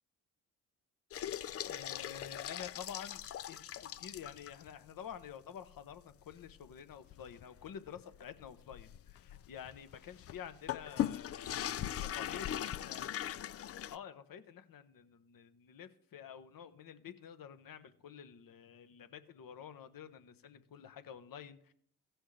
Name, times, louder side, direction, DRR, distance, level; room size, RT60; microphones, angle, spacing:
sound 1, 1.1-4.7 5.1-5.2 5.7-5.8 6.3-14.0, left 11 dB, 35° left, 0.4 m, -40 dB
voice 1, 1.7-11.6 12.0-13.4 13.9-21.7, left 8 dB, 50° left, 11 dB, 1.0 m, -49 dB
16.0 x 6.2 x 3.3 m, 0.64 s
hypercardioid pair, 45°, 43 cm